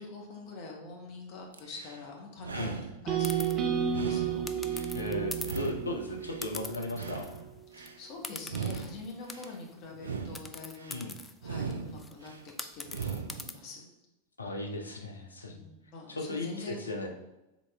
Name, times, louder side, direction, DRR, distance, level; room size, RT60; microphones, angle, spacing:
voice 1, 0.0-4.4 7.7-11.1 11.4-13.9 15.5-16.8, left 3 dB, 40° left, 0 dB, 1.0 m, -45 dB
sound 1, 1.5-2.0 2.4-3.5 3.9-5.0 5.4-6.5 6.9-8.0 8.4-9.5 9.9-11.0 11.4-12.4 12.8-13.5, right 6 dB, 70° right, 0.4 m, -39 dB
sound 2, 3.1-7.2, right 8 dB, 30° right, 0.7 m, -32 dB
sound 3, 3.2-3.5 4.5-5.7 6.4-7.5 7.8-7.9 8.2-9.7 10.3-13.5, left 3 dB, 10° left, 0.3 m, -43 dB
voice 2, 4.9-7.3 10.9-11.1 14.4-15.6 16.1-17.1, left 2 dB, 80° left, 2 dB, 0.6 m, -36 dB
4.1 x 3.6 x 3.3 m, 0.98 s
figure-of-eight pair, 90°, 0 cm